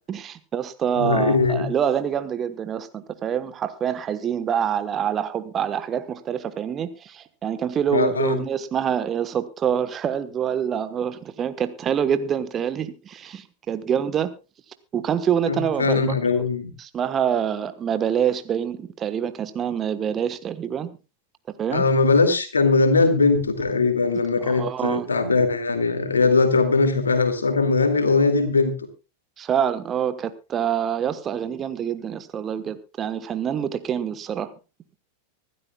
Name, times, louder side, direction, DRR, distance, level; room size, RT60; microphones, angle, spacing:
voice 1, 0.1-14.3 14.9-16.1 16.8-20.9 21.6-21.8 24.4-25.1 29.4-34.5, right 8 dB, 25° right, 11 dB, 1.2 m, -26 dB
voice 2, 1.0-1.7 7.9-8.4 15.5-16.7 21.7-28.7, left 4 dB, 75° left, 8 dB, 2.4 m, -20 dB
25.0 x 12.5 x 2.3 m, 0.30 s
figure-of-eight pair, 90°, 0 cm